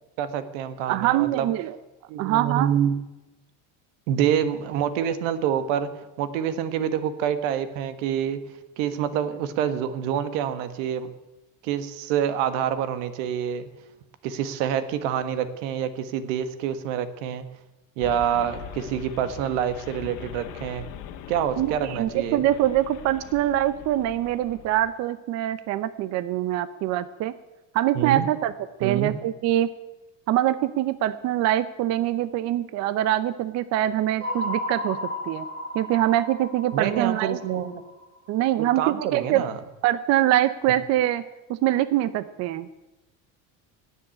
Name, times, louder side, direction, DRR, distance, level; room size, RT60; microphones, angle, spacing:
voice 1, 0.2-1.5 2.1-2.9 4.1-5.9 6.2-8.4 8.8-11.1 11.6-13.7 14.2-17.4 18.0-20.8 21.3-22.4 27.9-28.3 28.8-29.1 36.7-37.8 38.6-39.6, right 9 dB, 85° right, 12 dB, 1.6 m, -27 dB
voice 2, 0.9-1.7 2.2-2.7 21.6-27.3 27.7-28.5 28.8-29.7 30.3-35.5 35.7-37.4 38.3-39.5 39.8-41.2 41.5-42.7, right 13 dB, 45° right, 14 dB, 0.6 m, -24 dB
sound 1, 18.0-24.9, left 9 dB, 60° left, 1.6 m, -41 dB
sound 2, 34.2-38.4, left 1 dB, 25° right, 4.9 m, -34 dB
17.0 x 7.4 x 10.0 m, 1.0 s
cardioid pair, 150°, 36 cm